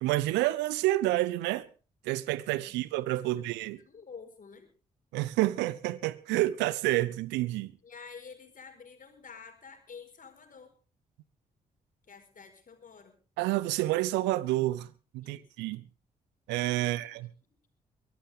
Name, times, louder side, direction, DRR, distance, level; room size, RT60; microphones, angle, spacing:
voice 1, 0.0-1.7 2.0-3.8 5.1-7.7 13.4-14.9 15.1-15.8 16.5-17.3, right 17 dB, 75° right, 0.8 m, -29 dB
voice 2, 3.8-4.7 7.8-10.7 12.1-13.2 15.2-15.7 16.8-17.1, left 5 dB, 50° left, 4.9 m, -49 dB
23.0 x 13.0 x 3.6 m
hypercardioid pair, 40°, 18 cm